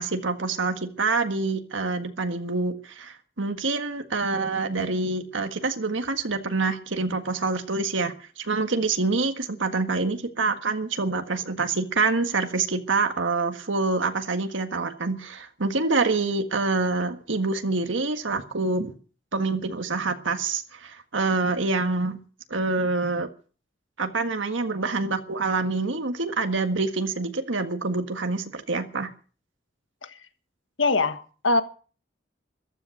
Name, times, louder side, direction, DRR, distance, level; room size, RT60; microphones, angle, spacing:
voice 1, 0.0-18.9 19.3-22.2 22.5-23.3 24.0-29.1, right 3 dB, 80° right, 6 dB, 1.7 m, -26 dB
voice 2, 30.8-31.6, left 3 dB, 80° left, 10 dB, 1.6 m, -23 dB
14.5 x 13.5 x 6.4 m, 0.39 s
head